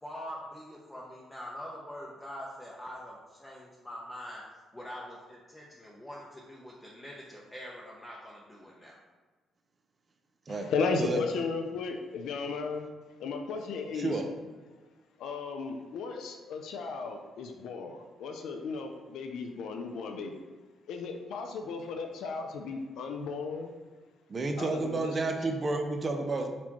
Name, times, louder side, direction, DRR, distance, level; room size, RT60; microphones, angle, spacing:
voice 1, 0.0-9.0, equal, 10° left, -4 dB, 0.7 m, -44 dB
voice 2, 10.5-12.9 13.2-14.2 15.2-20.3 20.9-23.7 24.6-25.3, left 4 dB, 80° left, 4 dB, 0.4 m, -35 dB
voice 3, 13.9-14.3 24.3-26.5, right 3 dB, 35° right, 4 dB, 0.5 m, -31 dB
4.3 x 4.3 x 2.9 m, 1.3 s
cardioid pair, 90°, 0 cm